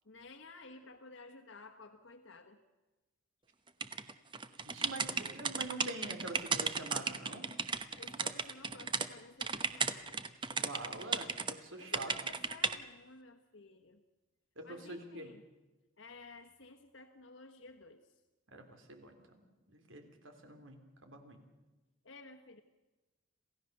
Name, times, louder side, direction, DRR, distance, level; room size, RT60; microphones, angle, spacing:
voice 1, 0.0-2.6 7.9-10.3 11.8-14.0 14.6-15.4 16.0-18.1 22.0-22.6, left 3 dB, 75° left, 4 dB, 1.4 m, -54 dB
sound 1, 3.8-9.1 9.4-11.5 11.9-12.8, right 5 dB, 25° right, 1.0 m, -35 dB
voice 2, 4.6-7.5 10.5-12.3 14.6-15.3 18.5-21.4, right 2 dB, 80° right, 6 dB, 3.5 m, -46 dB
27.5 x 16.0 x 6.8 m, 1.1 s
head